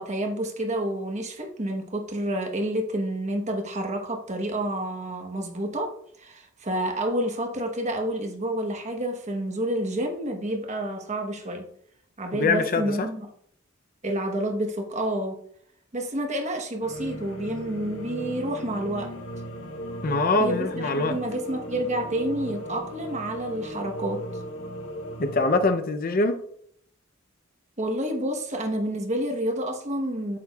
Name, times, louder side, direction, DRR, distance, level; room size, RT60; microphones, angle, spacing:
voice 1, 0.0-5.9 6.2-11.7 12.2-13.3 14.0-15.4 15.9-19.2 20.4-24.2 27.8-30.4, right 1 dB, 35° right, 4 dB, 1.0 m, -29 dB
voice 2, 12.3-13.1 20.0-21.2 25.2-26.4, left 3 dB, 45° left, 8 dB, 0.5 m, -23 dB
sound 1, 16.8-25.7, equal, 80° left, 1.0 m, -37 dB
8.5 x 8.3 x 2.3 m, 0.65 s
head